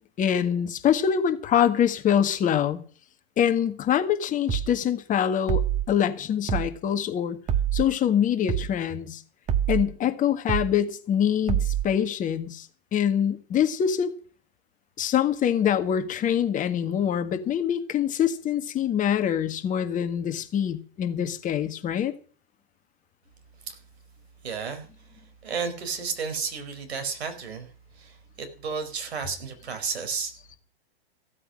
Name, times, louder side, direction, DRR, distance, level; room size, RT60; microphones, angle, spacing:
voice 1, 0.2-2.8 3.4-7.4 7.7-9.2 9.7-14.1 15.0-22.1, left 9 dB, 25° left, 1.7 m, -24 dB
sound 1, 4.5-4.7 5.5-5.9 6.5-6.7 7.5-7.9 8.5-8.7 9.5-9.9 10.5-10.7 11.5-11.9, right 9 dB, 25° right, 1.5 m, -25 dB
voice 2, 24.4-24.9 25.1-30.3, right 5 dB, 80° right, 4.4 m, -33 dB
15.5 x 8.7 x 6.3 m
hypercardioid pair, 125°, 31 cm